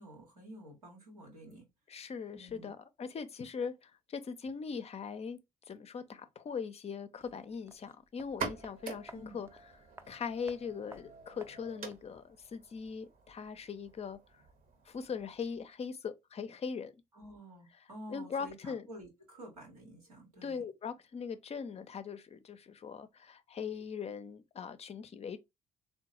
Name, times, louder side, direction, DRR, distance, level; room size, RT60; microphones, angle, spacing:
voice 1, 0.0-1.7 2.3-2.7 9.1-9.5 17.1-20.7, equal, 90° right, 1.0 m, -50 dB
voice 2, 1.9-5.4 5.7-9.5 10.1-14.2 14.9-16.9 18.1-18.9 20.4-25.4, left 6 dB, 35° left, 0.5 m, -40 dB
sound 1, 7.2-12.2 12.4-12.5, right 2 dB, 15° right, 0.5 m, -56 dB
sound 2, 8.2-15.7, right 5 dB, 50° right, 0.8 m, -47 dB
3.7 x 2.1 x 2.9 m
figure-of-eight pair, 45°, 19 cm